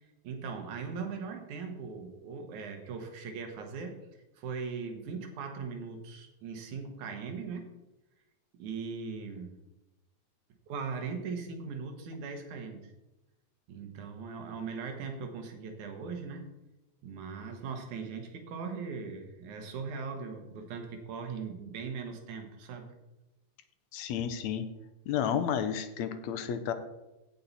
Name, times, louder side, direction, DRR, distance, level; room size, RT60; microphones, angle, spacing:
voice 1, 0.2-4.0 4.3-7.7 8.5-9.6 10.7-12.9 13.7-16.5 17.0-22.9, right 5 dB, 85° right, 5 dB, 2.8 m, -39 dB
voice 2, 23.9-24.7 25.1-26.7, left 8 dB, 75° left, 10 dB, 2.0 m, -31 dB
16.5 x 5.6 x 4.1 m, 0.99 s
omnidirectional pair, 3.4 m